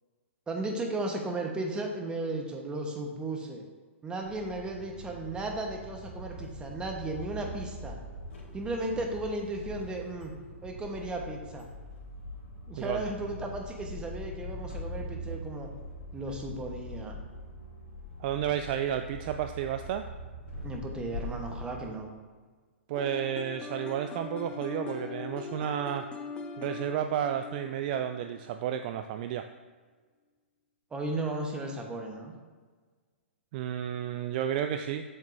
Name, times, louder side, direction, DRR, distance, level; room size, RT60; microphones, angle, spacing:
voice 1, 0.5-3.7 4.0-8.0 8.5-10.3 10.6-11.7 12.7-15.7 16.1-17.2 20.6-22.1 30.9-32.3, right 2 dB, 15° right, 1 dB, 1.1 m, -35 dB
sound 1, 4.2-21.9, left 1 dB, 70° left, 1.9 m, -42 dB
voice 2, 18.2-20.1 22.9-26.1 26.6-29.5 33.5-35.0, right 10 dB, 45° right, 7 dB, 0.3 m, -32 dB
sound 2, 22.9-28.8, left 4 dB, 15° left, 0.7 m, -41 dB
7.7 x 7.1 x 2.6 m, 1.5 s
hypercardioid pair, 120°, 7 cm